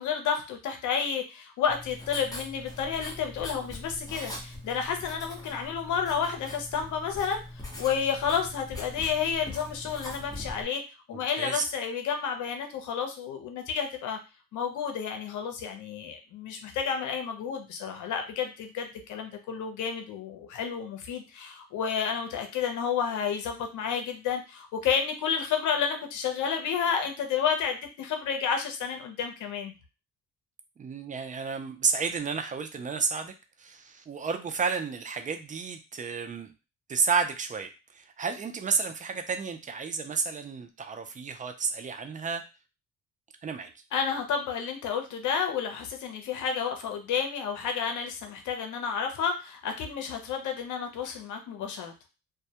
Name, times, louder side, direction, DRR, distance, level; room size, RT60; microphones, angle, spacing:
voice 1, 0.0-7.4 7.8-10.8 11.1-14.2 14.5-29.7 43.9-51.9, left 7 dB, 75° left, 5 dB, 0.6 m, -31 dB
Writing, 1.7-10.6, left 1 dB, 10° left, 0.8 m, -42 dB
voice 2, 11.1-11.6 30.8-36.5 36.9-42.4 43.4-43.7, right 5 dB, 25° right, 7 dB, 0.4 m, -31 dB
2.2 x 2.1 x 2.8 m, 0.29 s
cardioid pair, 90°, 30 cm